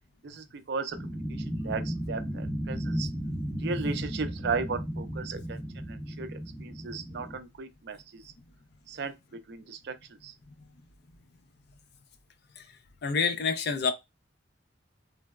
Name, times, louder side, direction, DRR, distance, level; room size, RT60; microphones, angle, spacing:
voice 1, 0.2-3.1 3.6-8.3 8.9-9.1 9.5-10.3, right 4 dB, 60° right, 0.4 m, -36 dB
sound 1, 0.9-7.4, equal, ahead, 0.6 m, -35 dB
voice 2, 13.0-13.9, left 5 dB, 55° left, 0.4 m, -27 dB
3.2 x 2.0 x 2.2 m
head